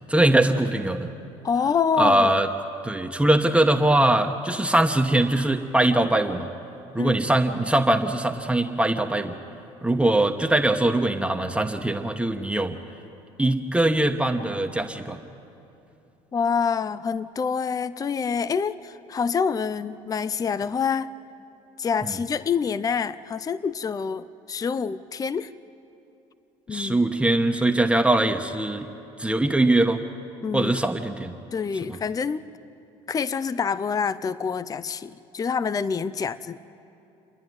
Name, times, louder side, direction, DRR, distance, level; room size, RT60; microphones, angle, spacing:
voice 1, 0.1-1.1 2.0-2.5 2.8-6.5 6.9-9.3 9.8-12.8 13.4-15.2 26.7-28.9 29.2-30.0 30.5-31.3, right 1 dB, 10° right, 4 dB, 1.1 m, -22 dB
voice 2, 1.4-2.3 7.0-7.2 16.3-21.1 21.8-25.5 26.7-27.0 30.4-30.7 31.5-32.4 33.1-36.6, left 6 dB, 25° left, 16 dB, 0.5 m, -26 dB
28.5 x 10.5 x 9.5 m, 2.8 s
supercardioid pair, 85°, 14 cm